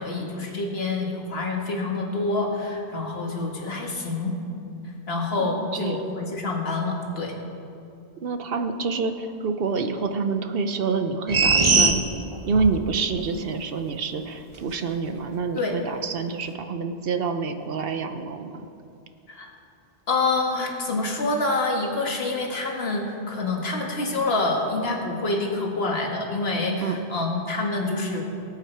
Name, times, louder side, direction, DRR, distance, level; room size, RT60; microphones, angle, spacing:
voice 1, 0.0-4.4 5.1-7.3 15.6-15.7 19.3-19.5 20.1-28.2, left 3 dB, 70° left, 0 dB, 1.8 m, -27 dB
voice 2, 5.4-6.0 8.2-12.0 12.5-18.7 26.8-27.0, right 4 dB, 65° right, 7 dB, 0.9 m, -27 dB
sound 1, 11.3-12.8 13.2-13.3, right 4 dB, 30° right, 0.8 m, -19 dB
18.5 x 8.5 x 4.5 m, 2.7 s
omnidirectional pair, 1.1 m